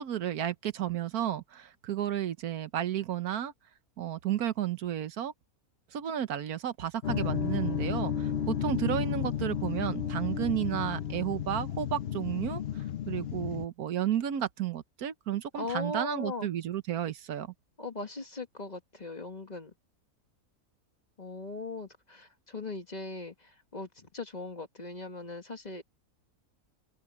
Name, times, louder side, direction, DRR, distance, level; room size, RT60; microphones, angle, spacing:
voice 1, 0.0-3.5 4.0-5.3 5.9-17.5, right 10 dB, 85° right, 1.5 m, -32 dB
sound 1, 7.0-13.7, left 9 dB, 55° left, 0.8 m, -33 dB
voice 2, 15.5-16.5 17.8-19.7 21.2-25.8, left 2 dB, 30° left, 1.5 m, -39 dB
open air
omnidirectional pair, 1.5 m